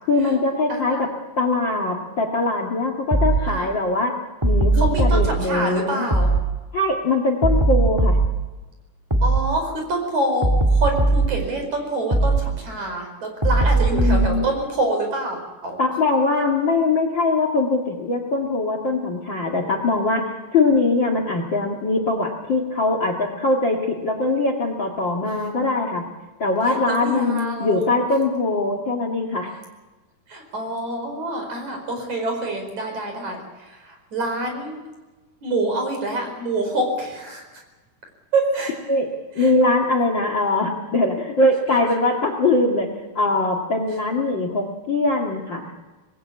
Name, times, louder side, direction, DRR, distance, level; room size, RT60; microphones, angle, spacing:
voice 1, 0.0-1.1 1.4-4.1 4.4-6.1 6.7-8.2 13.7-14.5 15.8-20.2 20.5-26.0 26.4-29.5 38.9-39.1 39.4-42.9 43.1-45.7, left 2 dB, 40° left, 5 dB, 2.1 m, -22 dB
voice 2, 0.7-1.1 3.4-3.7 4.7-6.3 9.2-15.8 26.7-27.9 30.3-34.8 35.4-37.6 38.3-38.8 39.4-39.5, right 2 dB, 50° right, 4 dB, 6.2 m, -26 dB
sound 1, 3.1-3.4 4.4-5.3 6.1-6.4 7.4-8.3 9.1-9.4 10.4-11.3 12.1-12.4 13.4-14.3, right 2 dB, 25° right, 0.5 m, -18 dB
25.5 x 20.0 x 8.6 m, 1.2 s
omnidirectional pair, 4.4 m